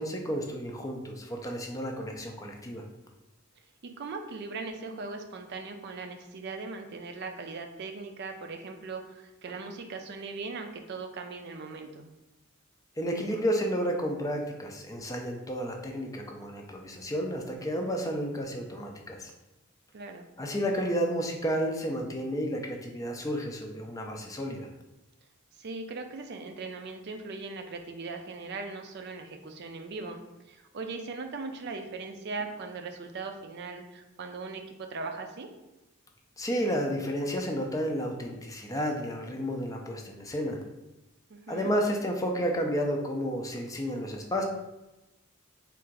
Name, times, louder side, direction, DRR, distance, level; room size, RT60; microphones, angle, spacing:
voice 1, 0.0-2.8 13.0-19.3 20.4-24.7 36.4-40.6 41.5-44.4, equal, 15° left, 2 dB, 0.4 m, -31 dB
voice 2, 3.8-12.0 19.9-20.3 25.6-35.5 41.3-41.7, right 4 dB, 50° right, 5 dB, 0.4 m, -39 dB
3.6 x 2.5 x 4.5 m, 1.0 s
head